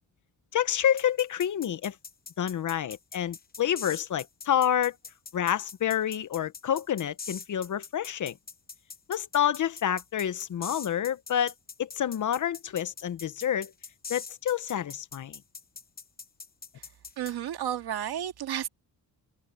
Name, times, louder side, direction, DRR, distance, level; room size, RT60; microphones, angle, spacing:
voice 1, 0.5-2.0 2.4-5.0 5.3-8.4 9.1-11.5 11.8-13.7 14.1-15.4, left 10 dB, 55° left, 0.9 m, -28 dB
sound 1, 1.0-17.3, left 5 dB, 25° left, 0.9 m, -42 dB
voice 2, 17.2-18.7, right 10 dB, 90° right, 2.1 m, -32 dB
wide cardioid pair, 150°, 37 cm